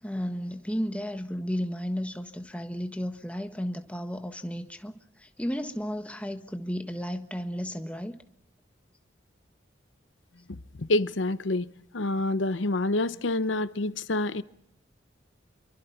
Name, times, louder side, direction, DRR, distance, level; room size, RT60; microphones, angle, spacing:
voice 1, 0.0-8.2, equal, 5° left, 1.4 m, -33 dB
voice 2, 10.8-14.4, left 2 dB, 80° left, 0.9 m, -27 dB
27.5 x 24.0 x 5.8 m
head